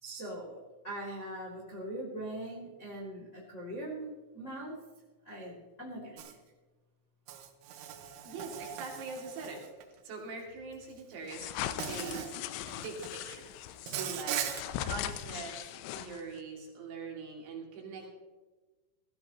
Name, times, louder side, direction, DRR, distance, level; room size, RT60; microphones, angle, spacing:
voice 1, 0.0-4.8 5.2-6.4, right 1 dB, 45° left, -3 dB, 0.9 m, -41 dB
Insect, 6.2-6.3 7.3-9.8 11.0-11.1 11.8-12.4 12.7-13.2 13.9-14.6, right 10 dB, 90° right, 3.6 m, -39 dB
voice 2, 8.2-11.5 11.9-12.3 12.7-13.5 13.9-14.4 14.8-18.1, right 4 dB, 65° right, -1 dB, 4.4 m, -43 dB
sound 1, 11.3-16.4, left 11 dB, 85° left, 3.4 m, -39 dB
16.5 x 15.5 x 2.9 m, 1.2 s
omnidirectional pair, 5.9 m